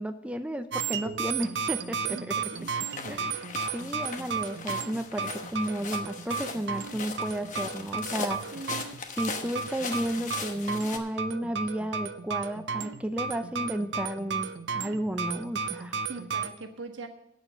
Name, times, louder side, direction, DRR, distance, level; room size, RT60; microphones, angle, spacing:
voice 1, 0.0-2.4 3.1-3.4 3.7-8.6 9.2-16.0, right 1 dB, 5° right, 8 dB, 0.5 m, -33 dB
sound 1, 0.7-16.5, right 5 dB, 70° right, 0.6 m, -34 dB
voice 2, 2.1-2.7 3.0-3.7 8.5-8.8 16.1-17.1, right 3 dB, 85° right, 5 dB, 1.4 m, -42 dB
sound 2, 2.6-11.0, left 4 dB, 40° left, 1.1 m, -39 dB
8.9 x 7.2 x 8.4 m, 0.79 s
head